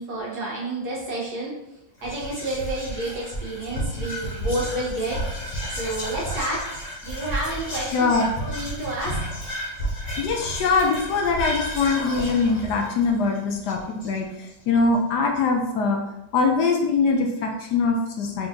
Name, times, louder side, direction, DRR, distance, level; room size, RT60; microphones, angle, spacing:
voice 1, 0.0-1.5 2.0-5.2 5.7-6.7 7.0-9.2, right 1 dB, 60° right, -4 dB, 1.7 m, -30 dB
Whispering, 2.0-14.5, equal, 25° left, 1.0 m, -32 dB
voice 2, 7.8-8.3 10.2-16.0 16.3-18.5, left 4 dB, 70° left, 2 dB, 1.1 m, -22 dB
4.3 x 3.8 x 2.8 m, 0.88 s
omnidirectional pair, 2.0 m